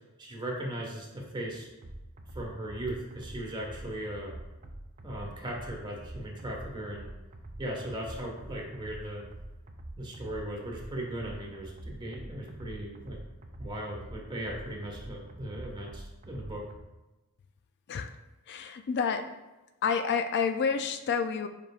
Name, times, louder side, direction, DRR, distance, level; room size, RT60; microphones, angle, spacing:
voice 1, 0.2-1.7 2.3-4.3 5.0-7.1 7.6-9.2 10.0-13.2 13.6-16.7, right 1 dB, 20° right, -2 dB, 1.3 m, -38 dB
sound 1, 1.8-16.8, right 1 dB, 35° right, 0.5 m, -45 dB
voice 2, 18.5-19.3 19.8-21.5, left 6 dB, 50° left, 8 dB, 0.3 m, -29 dB
7.8 x 5.3 x 2.4 m, 1.1 s
head